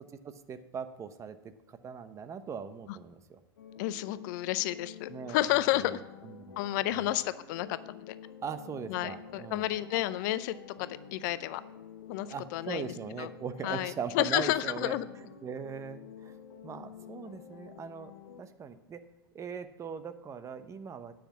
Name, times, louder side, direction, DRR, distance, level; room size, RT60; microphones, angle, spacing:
voice 1, 0.5-1.4 1.7-3.4 5.1-6.6 6.9-7.1 8.4-10.1 12.3-16.4 16.6-18.1 18.4-19.0 19.3-21.1, right 6 dB, 25° right, 11 dB, 0.8 m, -40 dB
sound 1, 3.6-18.4, left 7 dB, 75° left, 1.1 m, -50 dB
voice 2, 3.8-6.0 6.6-8.2 8.9-11.6 12.1-13.3 13.6-15.0, left 15 dB, 50° left, 15 dB, 0.6 m, -31 dB
9.9 x 6.0 x 8.3 m, 1.1 s
hypercardioid pair, 95°, 12 cm